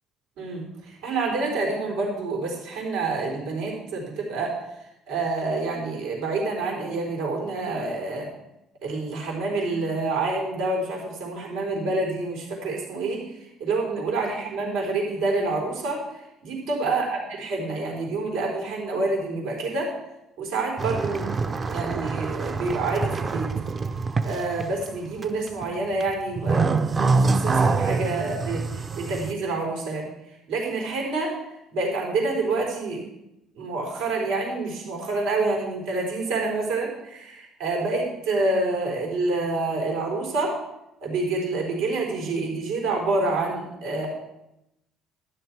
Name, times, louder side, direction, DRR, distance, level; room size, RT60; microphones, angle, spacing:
voice 1, 0.4-4.5 5.1-8.3 8.8-13.2 13.6-16.0 16.4-19.9 20.4-23.5 24.2-26.8 27.1-30.1 30.5-31.4 31.7-33.0 33.6-40.6 41.0-44.1, right 3 dB, 90° right, -1 dB, 4.1 m, -27 dB
sound 1, 20.8-24.9 25.2-25.6 26.0-29.3, right 4 dB, 25° right, 0.5 m, -25 dB
12.5 x 10.5 x 4.6 m, 0.88 s
cardioid pair, 155°, 0 cm